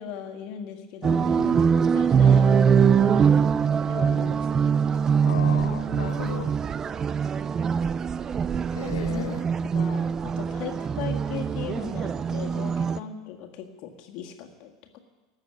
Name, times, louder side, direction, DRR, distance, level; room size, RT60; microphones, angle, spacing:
voice 1, 0.0-2.6 3.9-4.7 9.1-9.3 9.6-15.0, left 8 dB, 45° left, 4 dB, 1.7 m, -38 dB
sound 1, 1.0-13.0, right 6 dB, 25° right, 0.4 m, -23 dB
voice 2, 3.0-3.3 5.2-6.6 7.5-7.7 8.7-9.5, left 11 dB, 60° left, 6 dB, 0.7 m, -36 dB
18.5 x 6.8 x 8.4 m, 1.3 s
figure-of-eight pair, 80°, 2 cm